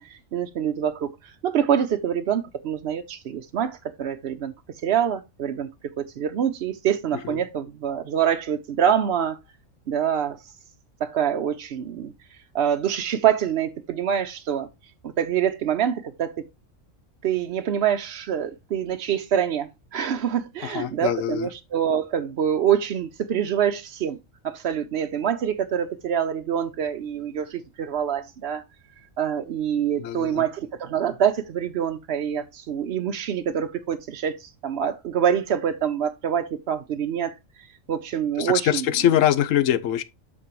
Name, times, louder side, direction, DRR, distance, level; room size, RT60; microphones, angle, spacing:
voice 1, 0.0-4.5 4.8-5.7 6.0-9.4 9.9-10.4 11.0-12.1 12.5-14.7 15.0-16.4 17.2-24.2 24.4-28.6 29.2-37.3 37.9-38.9, right 9 dB, 60° right, 0.8 m, -25 dB
voice 2, 20.6-21.5 30.0-30.4 38.4-40.0, left 11 dB, 80° left, 1.0 m, -23 dB
12.5 x 4.4 x 3.1 m
omnidirectional pair, 1.3 m